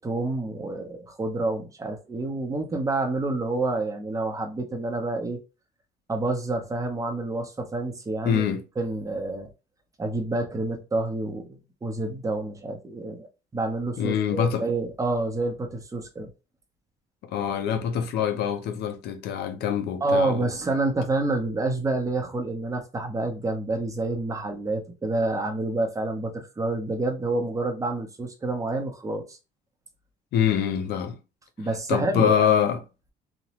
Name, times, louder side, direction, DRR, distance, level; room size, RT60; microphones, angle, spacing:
voice 1, 0.0-5.4 6.1-8.4 8.8-9.5 10.0-13.3 13.5-16.3 20.0-29.4 31.6-32.5, right 2 dB, 20° right, 0.8 m, -28 dB
voice 2, 8.2-8.6 14.0-14.6 17.2-20.5 30.3-31.2 31.9-32.8, left 8 dB, 75° left, 0.6 m, -24 dB
3.0 x 2.1 x 2.9 m
cardioid pair, 110°, 17 cm